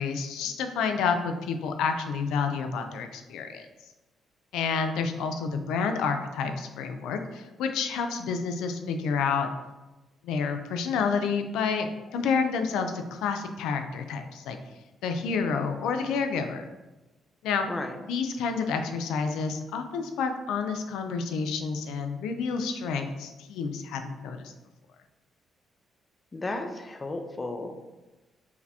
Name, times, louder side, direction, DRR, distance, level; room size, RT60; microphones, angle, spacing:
voice 1, 0.0-3.7 4.5-9.5 10.2-14.6 15.0-16.6 17.4-17.7 18.1-24.5, left 5 dB, 90° left, 6 dB, 0.4 m, -29 dB
voice 2, 17.7-18.0 26.3-27.8, left 2 dB, 30° left, 5 dB, 0.5 m, -34 dB
4.7 x 2.7 x 3.4 m, 1.1 s
cardioid pair, 90°, 0 cm